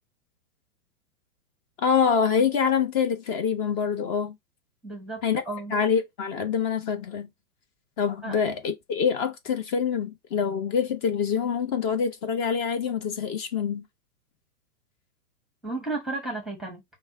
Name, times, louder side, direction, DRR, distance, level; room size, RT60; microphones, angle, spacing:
voice 1, 1.8-4.3 5.2-5.4 5.7-7.3 8.0-13.8, left 6 dB, 40° left, 1.1 m, -25 dB
voice 2, 4.8-5.7 8.2-8.4 15.6-16.8, right 2 dB, ahead, 0.8 m, -33 dB
5.3 x 2.3 x 3.6 m
hypercardioid pair, 125°, 47 cm